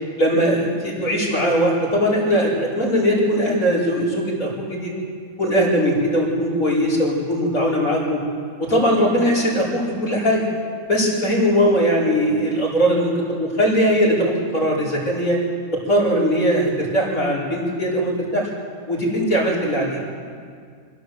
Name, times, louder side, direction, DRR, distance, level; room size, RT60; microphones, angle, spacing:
voice 1, 0.2-4.9 5.4-8.2 8.6-10.4 10.9-13.1 13.4-15.4 15.7-18.5 18.9-20.0, equal, 75° left, -6 dB, 5.6 m, -20 dB
25.0 x 16.0 x 7.9 m, 2.1 s
omnidirectional pair, 1.5 m